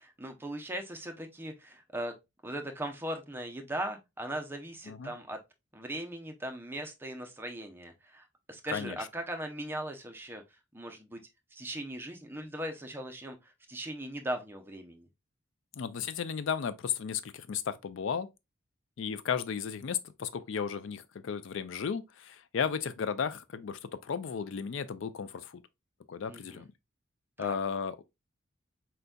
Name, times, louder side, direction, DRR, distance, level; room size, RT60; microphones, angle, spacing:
voice 1, 0.0-2.2 2.4-5.4 5.7-10.4 10.7-11.2 11.5-15.1 26.3-26.6 27.4-27.6, right 1 dB, 10° right, 0.6 m, -39 dB
voice 2, 15.8-18.3 19.0-25.6 26.1-26.7 27.4-28.0, left 7 dB, 65° left, 0.4 m, -34 dB
4.5 x 3.9 x 2.2 m
head